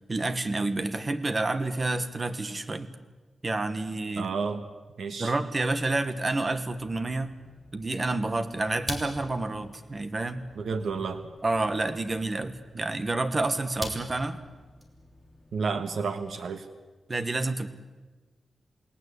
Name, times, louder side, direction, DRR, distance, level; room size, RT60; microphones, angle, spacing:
voice 1, 0.1-2.9 3.4-4.3 5.2-7.4 7.7-10.4 11.4-14.4 17.1-17.7, right 2 dB, 25° right, 11 dB, 1.4 m, -29 dB
voice 2, 4.2-4.6 5.0-5.3 10.6-11.2 15.5-16.6, right 5 dB, 85° right, 8 dB, 1.4 m, -31 dB
sound 1, 5.9-16.3, left 1 dB, 5° right, 3.3 m, -45 dB
28.5 x 19.0 x 8.3 m, 1.3 s
wide cardioid pair, 180°, 0 cm